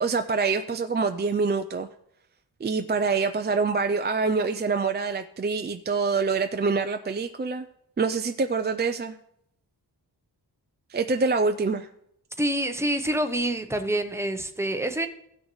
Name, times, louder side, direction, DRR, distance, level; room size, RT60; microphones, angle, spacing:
voice 1, 0.0-1.9 2.6-7.7 8.0-9.1 10.9-11.9, right 4 dB, 25° right, 7 dB, 0.4 m, -25 dB
voice 2, 12.4-15.1, right 1 dB, 5° right, 6 dB, 0.7 m, -27 dB
16.0 x 6.3 x 3.1 m, 0.76 s
wide cardioid pair, 100°, 41 cm